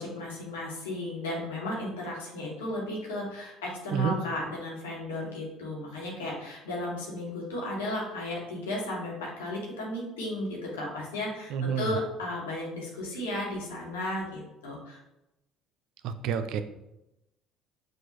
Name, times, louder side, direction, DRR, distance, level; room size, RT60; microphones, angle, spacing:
voice 1, 0.0-15.0, left 1 dB, 85° left, -3 dB, 1.4 m, -34 dB
voice 2, 11.5-11.9 16.0-16.6, right 7 dB, 65° right, 10 dB, 0.3 m, -28 dB
6.0 x 2.5 x 3.0 m, 0.91 s
hypercardioid pair, 60°, 0 cm